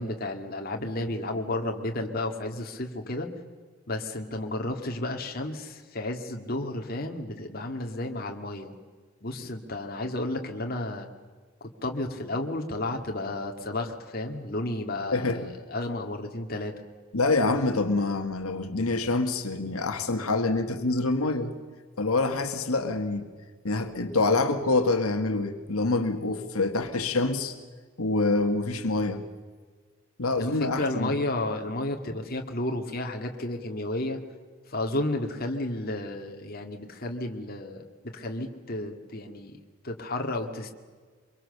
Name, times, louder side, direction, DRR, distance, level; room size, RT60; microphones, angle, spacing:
voice 1, 0.0-3.3 3.9-8.7 9.2-11.1 11.6-16.7 30.4-34.2 34.7-39.6 39.8-40.7, left 2 dB, 45° left, 3 dB, 2.2 m, -32 dB
voice 2, 15.1-15.5 17.1-21.6 22.0-23.3 23.6-27.6 28.0-29.2 30.2-31.1, left 3 dB, 85° left, 6 dB, 1.8 m, -26 dB
25.0 x 23.0 x 6.8 m, 1.5 s
head